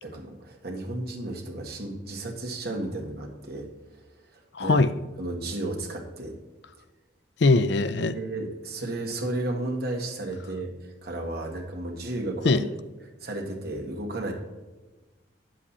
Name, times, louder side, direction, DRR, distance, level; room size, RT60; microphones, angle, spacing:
voice 1, 0.0-3.7 4.3-4.9 5.2-6.3 8.1-12.7 13.2-14.3, right 2 dB, 50° right, 1 dB, 1.8 m, -33 dB
voice 2, 4.5-4.9 7.4-8.2 12.4-12.6, left 3 dB, 60° left, 13 dB, 0.5 m, -21 dB
9.8 x 7.5 x 4.2 m, 1.2 s
head